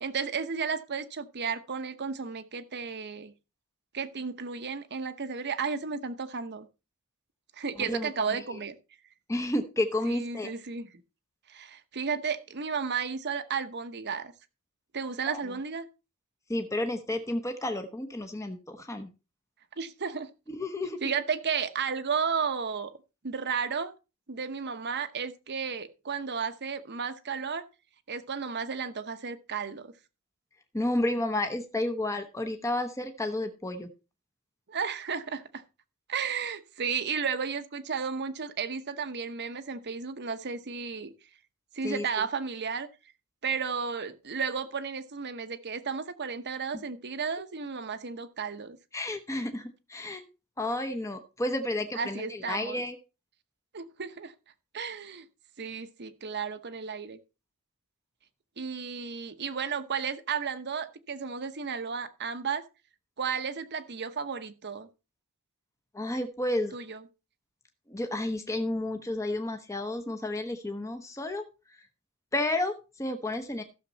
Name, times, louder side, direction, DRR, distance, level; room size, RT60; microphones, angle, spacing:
voice 1, 0.0-3.3 3.9-6.7 7.6-8.8 10.0-10.9 11.5-14.3 14.9-15.8 19.8-20.3 21.0-22.9 23.2-23.9 24.3-27.6 28.1-29.9 34.7-35.6 36.1-41.1 41.7-42.9 43.4-48.8 51.9-52.8 53.7-54.3 54.7-55.3 55.6-57.2 58.6-62.6 63.2-64.9 66.7-67.0, right 6 dB, 50° right, 0.9 m, -33 dB
voice 2, 7.8-8.3 9.3-10.5 15.3-15.4 16.5-19.1 20.5-21.0 30.7-33.9 41.8-42.2 46.7-46.8 48.9-50.3 50.6-53.0 65.9-66.7 67.9-71.4 72.3-73.6, left 1 dB, 15° left, 0.9 m, -31 dB
14.5 x 6.7 x 4.0 m
head